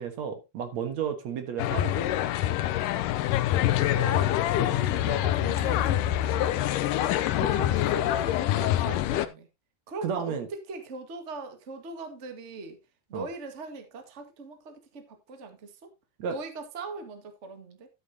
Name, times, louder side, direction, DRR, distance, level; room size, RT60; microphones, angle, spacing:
voice 1, 0.0-2.1 4.6-4.8 7.4-7.7 10.0-10.5 13.1-13.3 16.2-16.3, right 7 dB, 60° right, 2.2 m, -33 dB
sound 1, 1.6-9.3, left 13 dB, 80° left, 1.9 m, -25 dB
voice 2, 3.7-7.2 7.5-9.5 9.9-12.8 13.1-15.9 16.3-17.9, right 4 dB, 90° right, 0.6 m, -40 dB
12.5 x 8.9 x 2.8 m
omnidirectional pair, 4.5 m